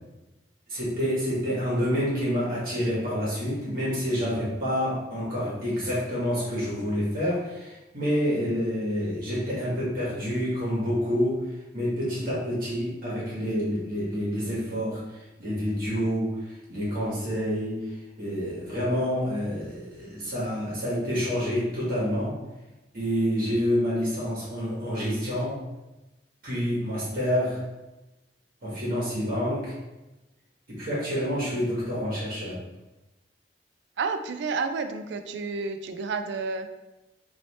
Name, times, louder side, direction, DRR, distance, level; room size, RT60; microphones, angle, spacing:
voice 1, 0.7-11.4 11.7-22.4 22.9-25.6 26.4-27.6 28.6-29.8 30.7-32.6, equal, 55° right, -7 dB, 1.4 m, -28 dB
voice 2, 34.0-36.7, right 4 dB, 80° right, 8 dB, 0.4 m, -30 dB
3.2 x 2.8 x 4.1 m, 1.0 s
head